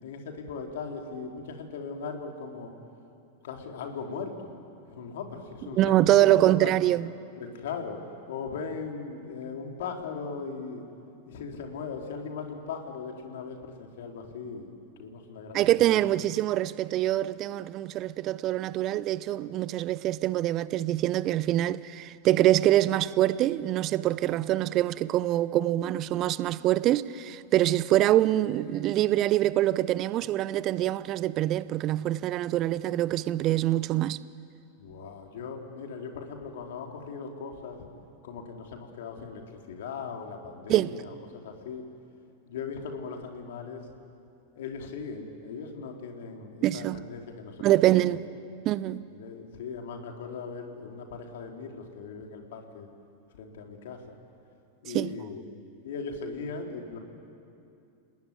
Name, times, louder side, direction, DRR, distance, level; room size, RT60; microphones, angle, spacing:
voice 1, 0.0-2.7 3.4-4.5 4.9-6.7 7.4-8.0 8.3-10.9 11.3-14.7 15.0-16.1 34.8-37.9 38.2-41.8 42.5-43.9 44.6-47.6 47.9-48.2 49.1-52.9 53.3-54.2 54.8-55.5 55.8-57.0, left 5 dB, 55° left, 3.6 m, -39 dB
voice 2, 5.7-7.1 15.5-34.2 40.7-40.9 46.6-47.0 47.6-48.2 48.7-49.0 54.9-55.1, right 14 dB, 35° right, 0.6 m, -24 dB
29.5 x 19.0 x 10.0 m
figure-of-eight pair, 90°, 0 cm